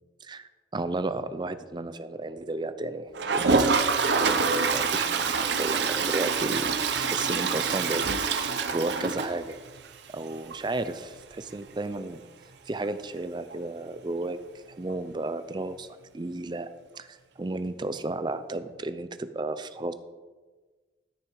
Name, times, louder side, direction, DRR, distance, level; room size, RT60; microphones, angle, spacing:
voice 1, 0.2-3.8 4.2-8.0 8.3-9.6 10.1-12.2 12.7-14.4 14.7-16.7 17.0-19.9, right 2 dB, 25° right, 12 dB, 0.4 m, -33 dB
Toilet flush, 3.1-9.9 10.2-10.3 10.5-10.6 10.8-10.9 13.5-13.6 14.9-15.0, right 5 dB, 70° right, 0.8 m, -26 dB
13.0 x 6.4 x 4.7 m, 1.4 s
head